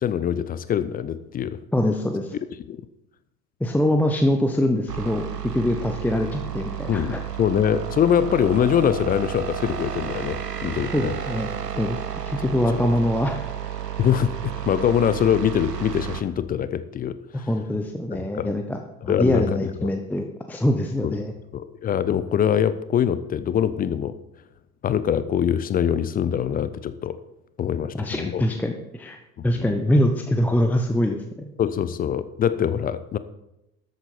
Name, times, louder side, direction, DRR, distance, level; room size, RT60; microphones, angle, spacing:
voice 1, 0.0-1.6 2.7-2.8 6.9-11.1 14.0-17.5 18.4-18.5 19.1-19.9 21.0-21.1 21.5-24.1 24.8-27.2 27.6-28.4 29.4-29.7 31.6-33.2, left 9 dB, 20° left, 14 dB, 0.5 m, -23 dB
voice 2, 1.7-2.3 3.6-7.2 10.9-12.0 12.3-13.5 17.3-21.3 27.9-29.2 29.4-31.5, left 1 dB, 5° left, 4 dB, 0.8 m, -24 dB
sound 1, 4.9-16.2, right 9 dB, 80° right, 1.0 m, -32 dB
13.0 x 8.3 x 4.4 m, 0.90 s
figure-of-eight pair, 70°, 48 cm